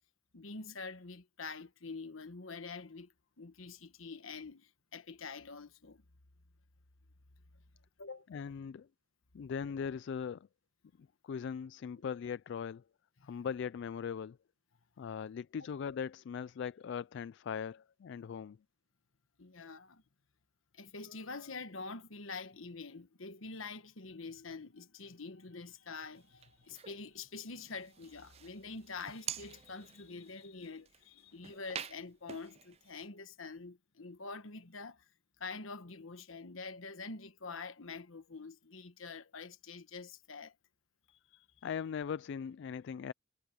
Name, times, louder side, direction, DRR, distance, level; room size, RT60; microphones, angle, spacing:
voice 1, 0.3-6.0 8.0-8.3 12.0-12.1 13.2-13.3 19.4-20.0 20.7-35.1 35.4-40.5 41.3-41.4, left 4 dB, 75° left, 1.3 m, -46 dB
voice 2, 8.3-8.9 9.3-10.5 11.2-12.8 13.2-14.4 15.0-18.6 41.6-43.1, left 7 dB, 60° left, 0.3 m, -39 dB
sound 1, 26.2-27.0 27.6-33.1, right 9 dB, 30° right, 0.4 m, -48 dB
head